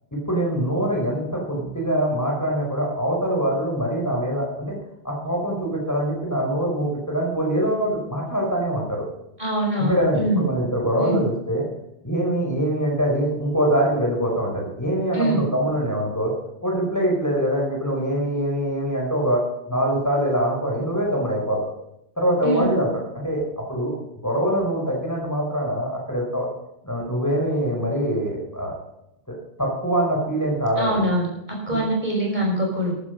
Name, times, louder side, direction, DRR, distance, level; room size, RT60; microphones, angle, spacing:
voice 1, 0.1-4.8 5.0-9.0 9.8-11.6 12.0-16.3 16.6-19.4 19.7-21.7 22.2-23.9 24.2-26.5 26.8-28.7 29.3-31.0, right 1 dB, 15° left, -2 dB, 5.1 m, -24 dB
voice 2, 9.4-10.5 11.0-11.2 15.1-15.4 22.4-22.7 30.8-31.3 31.7-32.9, right 1 dB, 45° right, -1 dB, 5.6 m, -23 dB
13.5 x 13.5 x 5.3 m, 0.80 s
omnidirectional pair, 1.1 m